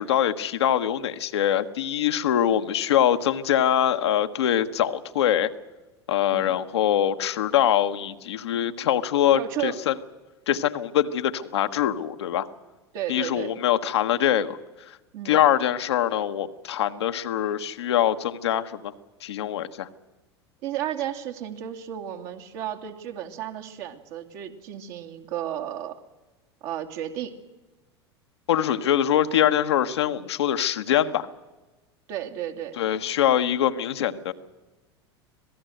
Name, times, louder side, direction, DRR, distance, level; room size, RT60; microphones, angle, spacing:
voice 1, 0.0-5.5 6.1-9.9 10.5-12.5 13.1-14.6 15.2-18.9 19.2-19.9 28.5-31.3 32.8-34.3, left 10 dB, 75° left, 7 dB, 1.3 m, -23 dB
voice 2, 9.3-9.8 12.9-13.6 15.1-15.4 20.6-26.0 26.6-27.3 32.1-32.8, right 11 dB, 60° right, 5 dB, 2.5 m, -33 dB
26.0 x 18.0 x 7.9 m, 1.1 s
hypercardioid pair, 85°, 14 cm